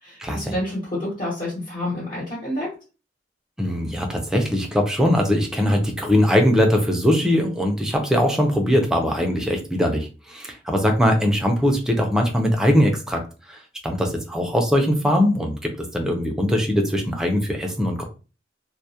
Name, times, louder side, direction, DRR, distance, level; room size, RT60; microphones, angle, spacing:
voice 1, 0.0-2.7, left 1 dB, 45° left, -5 dB, 1.0 m, -28 dB
voice 2, 3.6-13.2 13.5-18.0, equal, 5° right, 2 dB, 0.4 m, -21 dB
2.2 x 2.0 x 2.7 m, 0.34 s
head